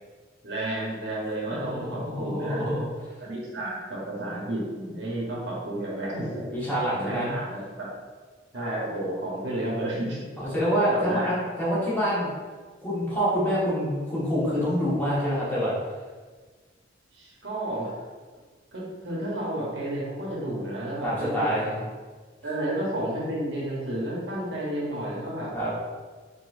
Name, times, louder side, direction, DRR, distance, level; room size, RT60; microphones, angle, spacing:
voice 1, 0.4-2.6 3.2-6.3 6.9-7.9 8.5-10.2 10.9-11.4 17.1-17.9 18.7-21.8 22.4-25.5, right 1 dB, 70° right, -5 dB, 1.1 m, -31 dB
voice 2, 1.5-2.8 6.2-7.4 10.4-12.3 12.8-15.7 21.0-21.7 25.5-25.7, equal, 10° left, -9 dB, 1.2 m, -26 dB
3.9 x 3.6 x 2.6 m, 1.4 s
head